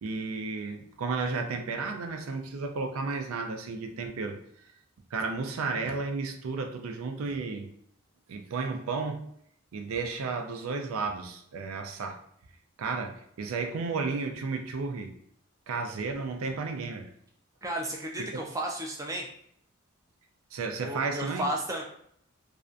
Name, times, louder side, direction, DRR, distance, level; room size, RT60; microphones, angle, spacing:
voice 1, 0.0-4.4 5.1-7.7 8.3-9.3 9.7-12.2 12.8-15.1 15.7-17.1 18.2-18.3 20.5-21.5, right 4 dB, 85° right, 4 dB, 0.4 m, -33 dB
voice 2, 17.6-19.3 20.8-21.8, right 1 dB, 15° right, -1 dB, 0.3 m, -33 dB
2.5 x 2.2 x 2.4 m, 0.69 s
head